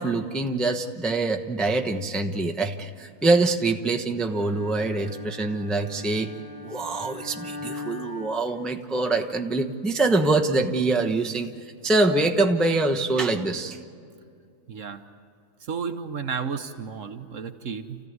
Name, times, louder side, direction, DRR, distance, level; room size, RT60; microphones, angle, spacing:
voice 1, 0.0-6.3 6.6-11.5 11.8-13.8, right 2 dB, ahead, 4 dB, 0.8 m, -24 dB
Bowed string instrument, 4.2-9.2, left 2 dB, 35° left, 1.8 m, -40 dB
voice 2, 14.7-15.0 15.6-18.0, right 6 dB, 60° right, 8 dB, 1.3 m, -32 dB
28.5 x 15.0 x 9.5 m, 2.3 s
omnidirectional pair, 1.6 m